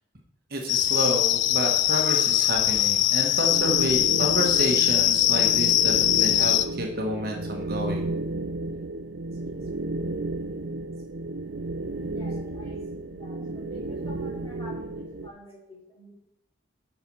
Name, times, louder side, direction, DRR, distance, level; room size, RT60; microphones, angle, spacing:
voice 1, 0.5-8.1, equal, 55° right, 1 dB, 1.4 m, -29 dB
sound 1, 0.7-6.7, left 13 dB, 75° left, 0.4 m, -22 dB
sound 2, 2.0-6.6, equal, 25° right, 2.5 m, -49 dB
sound 3, 3.5-15.3, right 2 dB, 80° right, 0.6 m, -33 dB
voice 2, 12.1-16.1, left 1 dB, 25° left, -7 dB, 4.0 m, -47 dB
7.8 x 5.9 x 5.4 m, 0.75 s
head